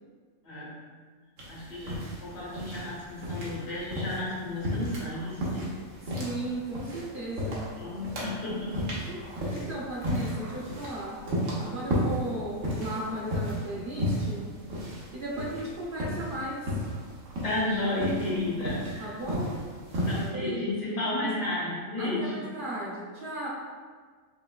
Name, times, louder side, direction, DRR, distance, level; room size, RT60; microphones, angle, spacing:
voice 1, 0.4-0.8 1.5-5.7 7.8-8.9 9.5-9.7 17.4-19.2 20.1-22.5, left 2 dB, 70° left, -8 dB, 1.8 m, -32 dB
sound 1, 1.4-20.3, equal, 65° right, 1.2 m, -34 dB
voice 2, 6.0-7.7 8.0-8.1 9.1-9.2 9.5-11.2 11.6-14.5 15.1-16.9 19.0-19.8 20.3-20.7 22.0-23.5, right 1 dB, 50° right, -6 dB, 0.7 m, -36 dB
5.0 x 3.1 x 2.2 m, 1.6 s
omnidirectional pair, 1.4 m